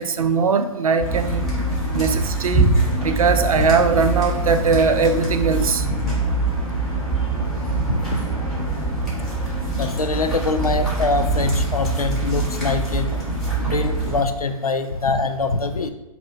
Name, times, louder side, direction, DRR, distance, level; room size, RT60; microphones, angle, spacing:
voice 1, 0.0-1.4 1.9-2.7 3.0-5.9, right 5 dB, 75° right, 9 dB, 0.5 m, -20 dB
sound 1, 1.0-14.2, right 2 dB, ahead, 1.5 m, -23 dB
voice 2, 5.8-6.1 7.7-8.2 9.8-13.1 13.6-15.9, left 3 dB, 85° left, 8 dB, 0.5 m, -24 dB
5.4 x 2.2 x 4.2 m, 0.97 s
figure-of-eight pair, 120°, 18 cm